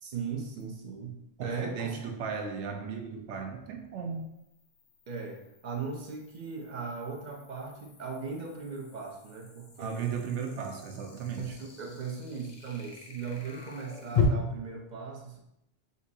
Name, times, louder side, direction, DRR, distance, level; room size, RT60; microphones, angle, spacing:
voice 1, 0.0-1.9 5.1-10.0 11.4-15.4, right 5 dB, 50° right, 1 dB, 0.5 m, -38 dB
sound 1, 0.6-0.7 4.1-14.2, left 8 dB, 50° left, 0.6 m, -39 dB
voice 2, 1.4-4.3 9.8-11.6, right 6 dB, 75° right, 3 dB, 0.9 m, -36 dB
3.8 x 2.7 x 2.6 m, 0.84 s
omnidirectional pair, 1.2 m